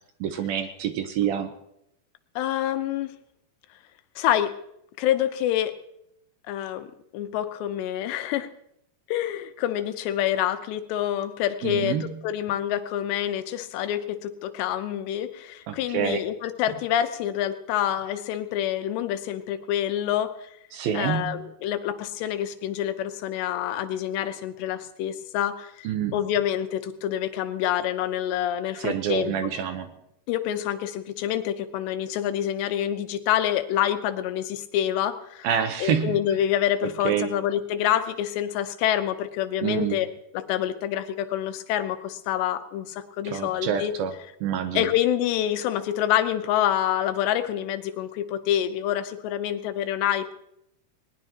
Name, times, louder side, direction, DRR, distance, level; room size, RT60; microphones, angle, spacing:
voice 1, 0.2-1.5 11.6-12.1 15.7-16.2 20.7-21.5 25.8-26.2 28.8-29.9 35.4-36.2 36.8-37.3 39.6-40.0 43.2-44.9, right 8 dB, 75° right, 8 dB, 2.4 m, -27 dB
voice 2, 2.4-3.1 4.2-4.5 5.0-5.7 6.5-6.9 7.1-8.5 9.1-20.5 20.9-25.9 26.1-29.3 30.3-35.5 35.8-40.1 40.3-43.9 44.7-50.3, left 11 dB, 85° left, 9 dB, 3.1 m, -27 dB
20.5 x 19.5 x 2.9 m, 0.79 s
omnidirectional pair, 4.9 m